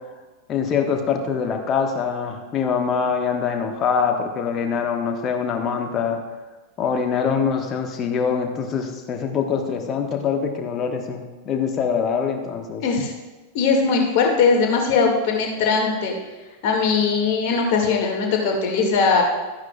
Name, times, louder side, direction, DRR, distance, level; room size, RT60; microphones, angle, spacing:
voice 1, 0.5-6.2 6.8-12.8, left 6 dB, 30° left, 4 dB, 1.2 m, -24 dB
voice 2, 12.8-13.1 13.5-16.1 16.6-19.2, left 5 dB, 45° left, 0 dB, 2.0 m, -20 dB
13.5 x 9.5 x 2.3 m, 1.2 s
figure-of-eight pair, 90°, 0 cm